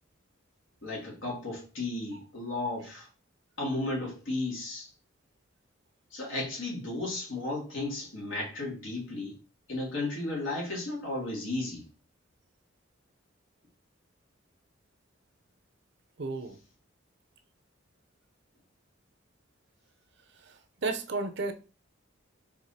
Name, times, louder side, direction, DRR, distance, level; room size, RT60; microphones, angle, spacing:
voice 1, 0.8-3.1 3.6-4.9 6.1-9.4 9.7-11.8, left 2 dB, 75° left, 2.1 m, -34 dB
voice 2, 16.2-16.6 20.3-21.5, right 3 dB, 60° right, 0.6 m, -34 dB
4.7 x 3.6 x 2.7 m
head